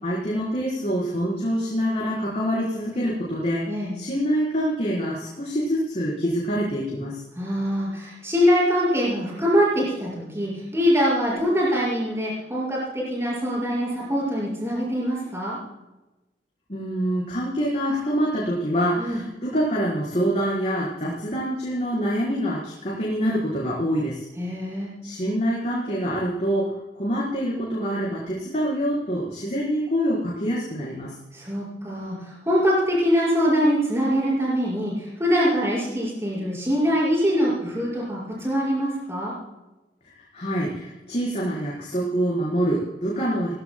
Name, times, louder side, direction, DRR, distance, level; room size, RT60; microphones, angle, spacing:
voice 1, 0.0-7.2 16.7-24.2 25.0-31.1 40.2-43.5, equal, 35° left, -6 dB, 4.4 m, -26 dB
voice 2, 7.3-15.6 19.0-19.2 24.4-24.9 31.3-39.3, equal, 15° right, -6 dB, 5.8 m, -23 dB
20.0 x 16.0 x 2.3 m, 1.0 s
head